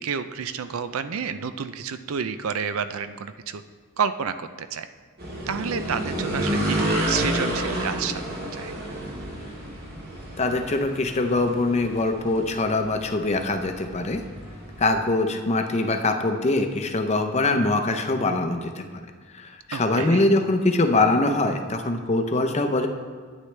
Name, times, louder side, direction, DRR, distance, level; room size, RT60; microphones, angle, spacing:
voice 1, 0.0-3.6 4.0-4.9 5.5-8.7 19.7-20.3, right 6 dB, 75° right, 11 dB, 0.5 m, -30 dB
sound 1, 5.2-14.9, right 1 dB, 45° right, 2.0 m, -30 dB
voice 2, 10.4-14.2 14.8-18.9 19.3-22.9, left 2 dB, 30° left, 5 dB, 0.7 m, -23 dB
11.5 x 9.2 x 3.3 m, 1.5 s
head